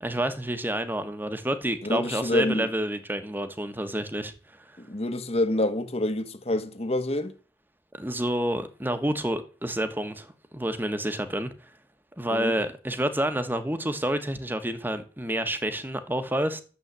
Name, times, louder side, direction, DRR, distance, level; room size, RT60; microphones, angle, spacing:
voice 1, 0.0-4.3 7.9-10.3 10.5-11.5 12.2-16.6, right 1 dB, 10° right, 1.3 m, -29 dB
voice 2, 1.8-2.7 4.8-7.3 12.3-12.6, left 1 dB, 35° left, 1.4 m, -27 dB
11.5 x 7.4 x 8.2 m
head